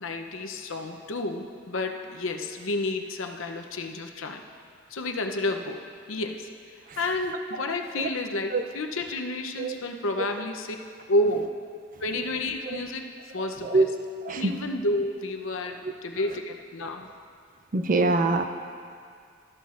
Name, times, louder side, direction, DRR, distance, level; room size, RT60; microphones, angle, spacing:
voice 1, 0.0-4.4 4.9-6.5 7.0-10.8 11.1-11.5 12.0-13.1 13.3-13.9 14.3-17.1, left 2 dB, 80° left, 4 dB, 0.7 m, -30 dB
voice 2, 14.2-14.6 17.7-18.4, right 3 dB, 45° right, 6 dB, 0.5 m, -23 dB
13.0 x 11.0 x 2.5 m, 2.2 s
head